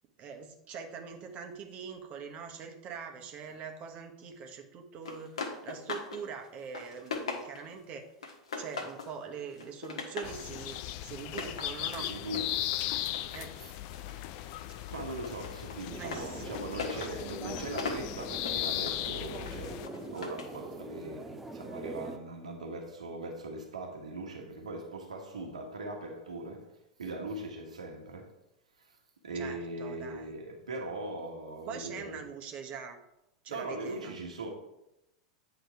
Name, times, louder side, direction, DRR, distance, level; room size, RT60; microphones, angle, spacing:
voice 1, 0.2-12.1 13.3-13.5 16.0-16.5 29.3-30.3 31.7-33.0 33.4-34.2, right 6 dB, 40° right, 1.1 m, -43 dB
sound 1, 5.0-6.2 6.5-7.8 8.2-9.1 9.5-10.4 11.2-14.2 14.5-20.6, left 4 dB, 75° left, 1.4 m, -41 dB
sound 2, 10.2-19.9, left 13 dB, 50° left, 0.4 m, -37 dB
voice 2, 11.9-13.7 14.2-28.3 28.8-29.0 29.2-32.2 33.5-34.5, right 2 dB, 80° right, 1.3 m, -40 dB
sound 3, 15.9-22.2, right 2 dB, 10° right, 0.6 m, -44 dB
9.2 x 3.9 x 4.7 m
figure-of-eight pair, 90°, 4 cm